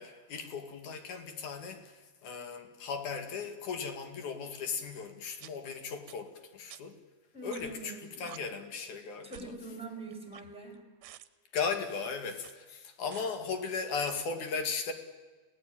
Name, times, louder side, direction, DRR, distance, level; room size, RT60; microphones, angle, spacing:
voice 1, 0.0-7.0 7.4-9.5 11.5-14.9, left 5 dB, 55° left, 6 dB, 3.4 m, -37 dB
sound 1, 4.5-4.6 5.4-5.5 6.1-6.2 6.7-6.8 7.5-7.8 8.2-8.4 9.3-9.6 10.1-10.7 11.0-11.3 12.4-12.5 13.1-13.3 14.0-14.1, right 14 dB, 75° right, 2.7 m, -49 dB
voice 2, 7.3-8.2 9.2-10.8, right 2 dB, ahead, 3 dB, 5.1 m, -44 dB
30.0 x 18.0 x 9.0 m, 1.4 s
omnidirectional pair, 4.5 m